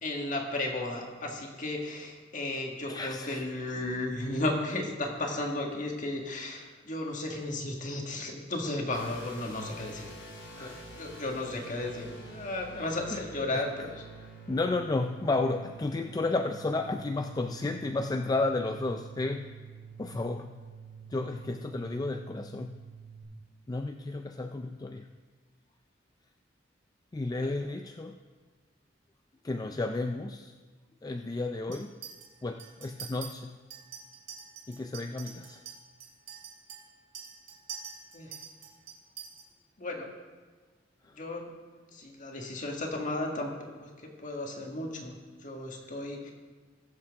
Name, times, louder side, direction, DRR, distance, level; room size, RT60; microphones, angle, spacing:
voice 1, 0.0-10.1 10.6-10.7 11.0-13.9 27.4-27.5 38.1-38.4 39.8-40.1 41.2-41.4 41.9-43.5 43.8-43.9 44.2-45.1 45.4-46.3, left 2 dB, 45° left, 1 dB, 1.7 m, -34 dB
voice 2, 2.9-3.4 6.6-6.8 8.2-8.3 9.8-9.9 10.5-10.8 12.7-13.7 14.2-19.6 20.0-20.6 21.1-22.8 23.7-25.1 27.1-28.2 29.4-30.5 31.0-31.9 32.4-33.6 34.7-35.6 41.0-41.1 45.8-45.9, left 2 dB, 20° left, 6 dB, 0.3 m, -33 dB
sound 1, 8.9-23.2, right 3 dB, 85° left, 3.0 m, -48 dB
Chink clink, 31.7-32.3 32.6-33.3 33.7-39.4, right 7 dB, 45° right, 3.2 m, -45 dB
20.5 x 7.3 x 3.6 m, 1.4 s
head